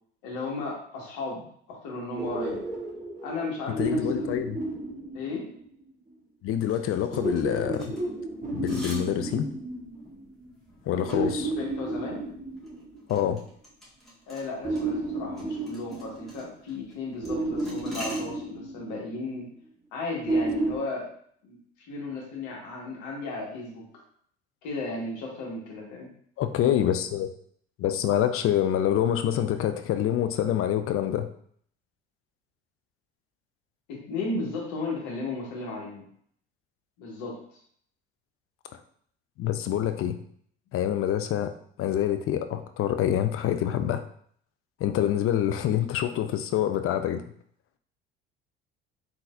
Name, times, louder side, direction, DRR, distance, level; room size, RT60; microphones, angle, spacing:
voice 1, 0.2-2.6 3.2-4.5 5.1-5.5 10.9-12.2 14.3-19.5 19.9-21.1 21.4-21.6 21.9-24.0 24.6-26.1 33.9-36.0 37.0-37.4, left 3 dB, 65° left, -2 dB, 1.6 m, -35 dB
sound 1, 2.2-5.8 7.1-10.4 11.1-13.2 14.6-16.7 17.2-19.3 20.3-20.8, right 2 dB, 25° right, 1.2 m, -32 dB
voice 2, 3.8-4.6 6.4-7.9 8.5-9.5 10.9-11.5 13.1-13.4 26.4-27.3 27.8-31.3 39.4-40.2 40.7-41.5 41.8-44.0 44.8-47.2, left 10 dB, 45° left, 8 dB, 0.5 m, -26 dB
sound 2, 6.6-18.2, equal, ahead, 1.7 m, -47 dB
4.3 x 3.8 x 2.5 m, 0.62 s
hypercardioid pair, 60°, 33 cm